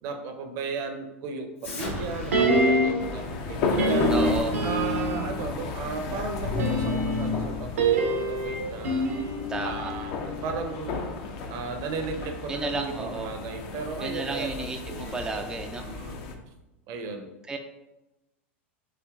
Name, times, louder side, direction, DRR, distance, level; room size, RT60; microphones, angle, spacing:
voice 1, 0.0-4.1 4.6-9.1 9.6-11.0 11.5-16.2 16.9-17.3, right 4 dB, 50° right, 5 dB, 0.7 m, -35 dB
Explosion, 1.6-6.7, left 2 dB, 75° left, 1.3 m, -39 dB
sound 1, 2.3-3.1 3.8-5.4 6.4-10.6 10.9-11.0, right 1 dB, 80° right, 0.8 m, -26 dB
sound 2, 3.0-16.3, left 4 dB, 50° left, 0.6 m, -34 dB
voice 2, 4.1-4.5 9.5-9.9 12.5-13.3 14.0-15.9 17.5-17.6, right 3 dB, 10° right, 3 dB, 0.3 m, -32 dB
5.8 x 3.1 x 2.4 m, 0.99 s
hypercardioid pair, 95°, 7 cm